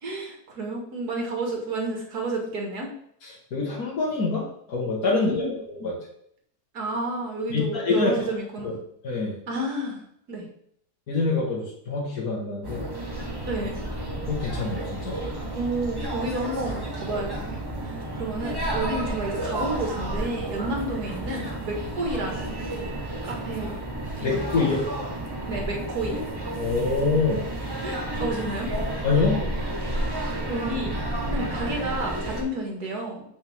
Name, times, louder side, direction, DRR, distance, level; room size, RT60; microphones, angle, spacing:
voice 1, 0.0-2.9 5.1-5.5 6.7-8.8 9.5-10.0 10.3-10.5 13.4-13.9 15.5-22.7 23.2-23.8 24.2-24.6 25.5-26.3 27.8-28.7 30.5-30.9 31.3-33.2, right 2 dB, 70° right, 0 dB, 2.4 m, -31 dB
voice 2, 3.2-6.0 7.5-8.1 8.6-8.7 9.0-9.4 11.1-12.8 14.3-15.2 18.1-18.2 24.2-24.9 26.6-27.5 29.0-29.4, left 4 dB, 65° left, -4 dB, 2.0 m, -26 dB
sound 1, 12.6-32.4, right 1 dB, 15° right, 1.3 m, -31 dB
8.9 x 5.5 x 3.6 m, 0.68 s
omnidirectional pair, 1.7 m